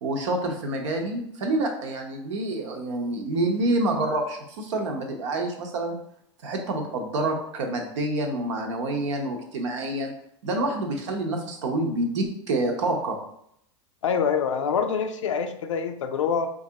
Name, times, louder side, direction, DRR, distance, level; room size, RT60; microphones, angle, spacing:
voice 1, 0.0-6.0 6.4-10.1 10.4-13.2, right 2 dB, 75° right, 3 dB, 0.8 m, -27 dB
voice 2, 14.0-16.5, left 6 dB, 85° left, 8 dB, 0.4 m, -25 dB
4.7 x 2.5 x 2.8 m, 0.72 s
hypercardioid pair, 100°, 16 cm